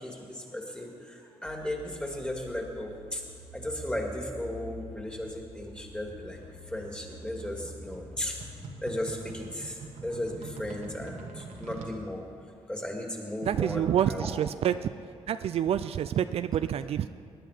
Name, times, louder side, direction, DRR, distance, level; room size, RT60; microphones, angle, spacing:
voice 1, 0.0-3.2 3.5-6.4 6.7-8.4 8.8-12.2 12.7-14.3, left 1 dB, 10° left, 1 dB, 2.3 m, -36 dB
sound 1, 1.5-9.3, left 1 dB, 70° left, 2.7 m, -47 dB
sound 2, 6.3-12.0, right 3 dB, 85° right, 1.5 m, -44 dB
voice 2, 13.4-14.7 15.3-17.1, right 10 dB, 65° right, 12 dB, 0.4 m, -27 dB
20.0 x 10.0 x 5.1 m, 2.3 s
cardioid pair, 115°, 11 cm